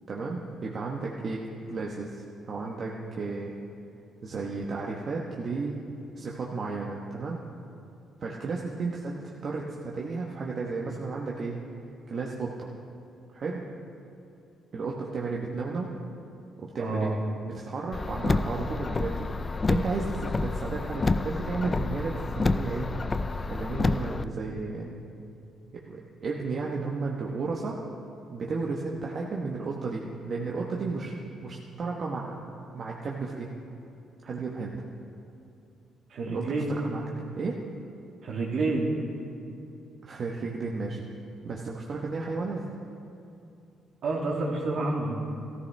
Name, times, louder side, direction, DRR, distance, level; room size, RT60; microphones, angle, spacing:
voice 1, 0.1-1.4 1.7-3.5 4.2-5.8 6.2-7.4 8.2-11.6 12.1-12.7 13.3-13.6 14.7-15.9 16.6-17.1 17.4-19.3 19.7-23.1 23.5-24.9 25.7-27.8 28.3-32.5 32.7-33.5 34.2-34.8 36.2-37.1 37.4-37.6 40.0-41.0 41.4-42.6, right 4 dB, 50° right, -2 dB, 1.1 m, -33 dB
voice 2, 16.8-17.1 36.1-36.7 38.2-38.9 44.0-45.1, right 3 dB, 70° right, -2 dB, 2.4 m, -28 dB
Car, 17.9-24.2, left 3 dB, 30° left, 0.4 m, -29 dB
15.5 x 14.0 x 3.4 m, 2.6 s
cardioid pair, 90°, 0 cm